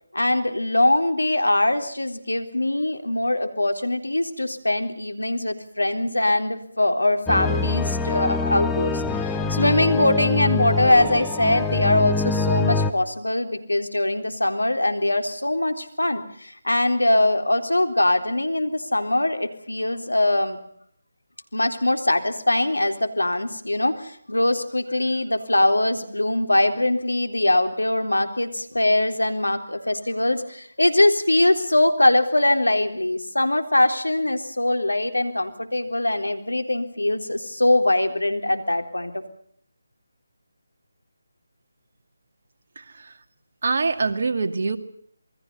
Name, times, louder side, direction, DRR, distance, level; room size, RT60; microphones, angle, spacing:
voice 1, 0.1-20.6 21.5-39.2, left 1 dB, 90° left, 8 dB, 3.8 m, -22 dB
sound 1, 7.3-12.9, left 4 dB, 10° left, 1.3 m, -25 dB
voice 2, 42.8-43.1 43.6-44.8, right 4 dB, 55° right, 7 dB, 2.4 m, -24 dB
28.0 x 21.5 x 5.5 m, 0.65 s
figure-of-eight pair, 155°, 0 cm